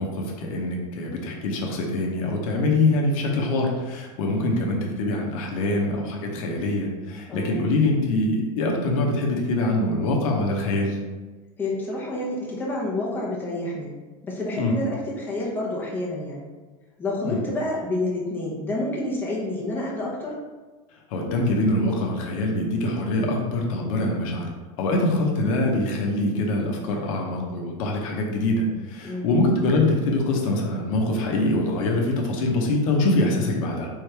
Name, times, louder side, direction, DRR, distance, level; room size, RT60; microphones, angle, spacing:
voice 1, 0.0-11.0 14.6-14.8 17.2-17.4 21.1-24.5 24.8-33.9, left 2 dB, 70° left, 0 dB, 0.8 m, -24 dB
voice 2, 11.6-13.9 14.2-16.4 17.0-20.4 29.0-29.4, left 2 dB, 10° left, -4 dB, 0.8 m, -29 dB
3.6 x 3.2 x 3.3 m, 1.3 s
supercardioid pair, 145°, 18 cm